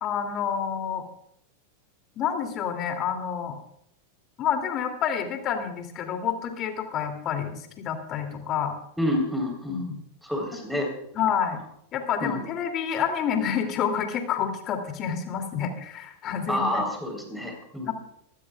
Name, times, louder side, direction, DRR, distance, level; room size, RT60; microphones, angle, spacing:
voice 1, 0.0-1.0 2.2-3.6 4.4-8.7 9.7-9.9 11.1-11.6 11.9-16.8 17.8-17.9, left 8 dB, 35° left, 6 dB, 2.8 m, -28 dB
voice 2, 9.0-9.8 10.2-10.9 12.2-12.5 16.5-17.9, left 1 dB, ahead, 1 dB, 4.0 m, -28 dB
25.0 x 16.0 x 2.4 m, 0.73 s
figure-of-eight pair, 90°, 0 cm